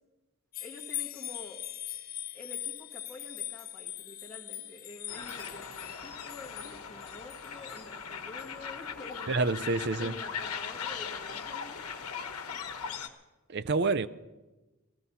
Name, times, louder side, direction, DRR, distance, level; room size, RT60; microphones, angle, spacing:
sound 1, 0.5-7.8 8.4-8.5, left 13 dB, 40° left, 0.5 m, -41 dB
voice 1, 0.6-1.6 2.3-9.5 10.0-12.2, left 2 dB, 10° left, 1.8 m, -48 dB
sound 2, 5.1-13.1, left 6 dB, 85° left, 1.2 m, -39 dB
voice 2, 9.3-10.2 13.5-14.1, right 3 dB, 50° right, 0.5 m, -28 dB
17.5 x 14.0 x 5.6 m
head